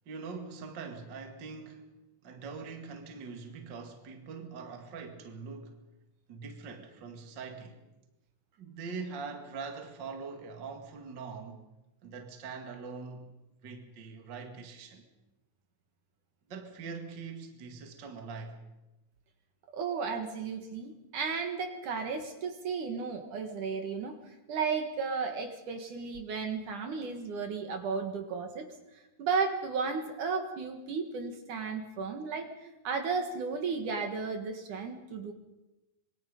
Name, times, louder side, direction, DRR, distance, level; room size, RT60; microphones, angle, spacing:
voice 1, 0.1-1.9 2.2-5.8 6.3-7.8 8.6-11.6 12.0-13.3 13.6-15.1 16.5-18.6, right 4 dB, 35° right, 2.1 m, -43 dB
voice 2, 19.7-28.7 29.2-35.3, right 5 dB, 60° right, 3.0 m, -34 dB
26.0 x 22.0 x 5.3 m
omnidirectional pair, 4.3 m